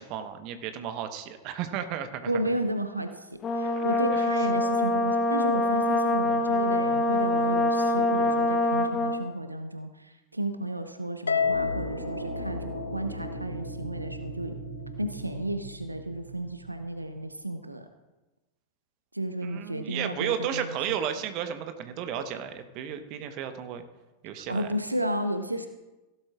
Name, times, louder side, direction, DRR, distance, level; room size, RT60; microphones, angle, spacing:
voice 1, 0.0-2.3 3.8-4.3 19.4-23.8 24.2-24.7, right 9 dB, 40° right, 8 dB, 1.1 m, -33 dB
voice 2, 2.3-14.6 15.0-17.9 19.1-21.0 24.3-25.7, right 1 dB, 85° right, 8 dB, 0.7 m, -33 dB
Brass instrument, 3.4-9.3, left 1 dB, 25° left, 1.0 m, -25 dB
Harp, 11.3-13.7, left 6 dB, 75° left, 0.4 m, -30 dB
sound 1, 11.3-17.2, right 1 dB, 65° right, 2.6 m, -38 dB
16.0 x 12.5 x 2.5 m, 1.1 s
figure-of-eight pair, 90°, 0 cm